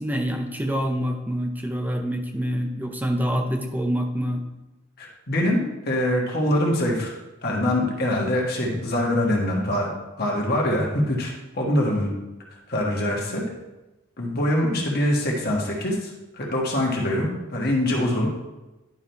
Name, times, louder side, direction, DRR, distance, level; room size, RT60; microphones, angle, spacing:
voice 1, 0.0-4.4, equal, 10° right, 3 dB, 0.6 m, -26 dB
voice 2, 5.0-7.1 7.4-9.9 10.2-12.1 12.7-13.4 14.2-18.3, left 1 dB, 45° left, -2 dB, 1.5 m, -24 dB
10.5 x 3.7 x 4.5 m, 1.0 s
head